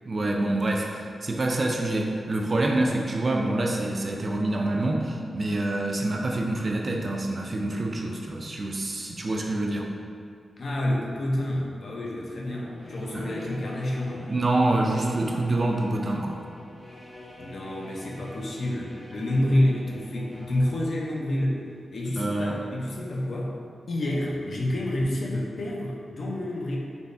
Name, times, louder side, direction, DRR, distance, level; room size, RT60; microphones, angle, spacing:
voice 1, 0.1-9.9 13.1-13.2 14.2-16.4 22.2-22.6, right 2 dB, 45° right, 0 dB, 0.3 m, -26 dB
voice 2, 10.6-14.3 17.4-21.6 21.9-23.5 23.9-26.8, left 1 dB, 65° left, -3 dB, 0.5 m, -28 dB
sound 1, 12.5-20.9, left 2 dB, 85° left, 1.0 m, -44 dB
3.4 x 2.0 x 2.5 m, 2.3 s
cardioid pair, 60°, 0 cm